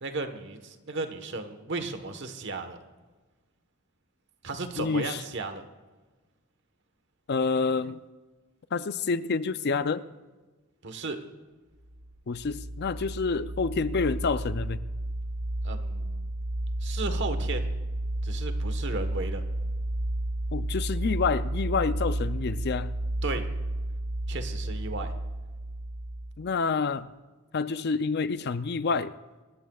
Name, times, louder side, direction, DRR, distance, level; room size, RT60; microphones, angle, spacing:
voice 1, 0.0-2.8 4.4-5.7 10.8-11.2 15.6-16.3 16.8-17.7 18.2-19.4 23.2-23.5 24.3-25.1, right 3 dB, 55° right, 1.3 m, -35 dB
voice 2, 4.8-5.2 7.3-8.0 8.7-10.0 12.3-14.8 20.5-22.9 26.4-27.1 27.5-29.1, left 4 dB, 50° left, 0.5 m, -28 dB
sound 1, 11.9-26.3, right 1 dB, 40° right, 2.8 m, -32 dB
26.5 x 14.0 x 2.4 m
head